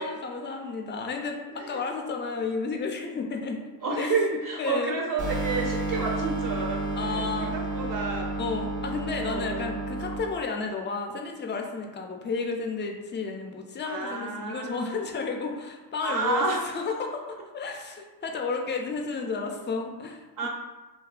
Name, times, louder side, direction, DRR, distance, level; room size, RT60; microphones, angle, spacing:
voice 1, 0.0-3.7 4.0-4.1 4.6-4.9 7.0-7.5 8.4-16.5 16.7-20.2, left 4 dB, 30° left, 2 dB, 0.4 m, -32 dB
voice 2, 1.5-1.8 3.8-8.3 9.3-9.7 13.8-15.0 16.0-17.0 20.4-20.5, right 4 dB, 50° right, -1 dB, 0.5 m, -30 dB
sound 1, 5.2-10.2, right 2 dB, 85° right, 0.8 m, -31 dB
2.6 x 2.2 x 2.4 m, 1.2 s
cardioid pair, 75°, 43 cm